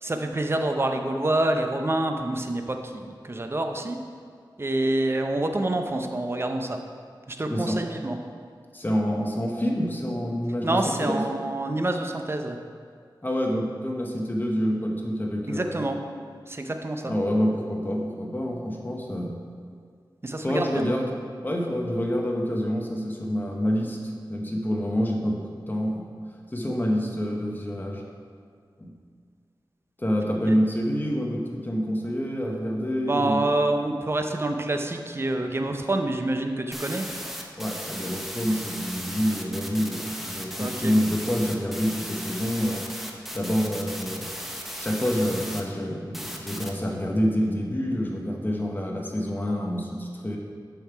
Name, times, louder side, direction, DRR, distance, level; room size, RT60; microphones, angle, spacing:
voice 1, 0.0-4.0 4.6-6.8 7.3-8.2 10.6-12.6 15.5-16.0 16.5-17.1 20.2-20.8 30.5-30.6 33.0-37.1 40.6-40.9, right 2 dB, 30° right, 5 dB, 0.6 m, -27 dB
voice 2, 7.5-7.8 8.7-11.2 13.2-15.9 17.0-19.4 20.4-21.2 21.4-26.1 26.5-28.0 28.8-28.9 30.0-33.5 37.6-42.8 43.3-44.3 44.8-50.4, equal, 25° left, 0 dB, 1.1 m, -27 dB
sound 1, 36.7-45.6 46.1-46.7, equal, 5° right, 0.8 m, -36 dB
7.2 x 5.7 x 4.6 m, 2.1 s
wide cardioid pair, 70°, 8 cm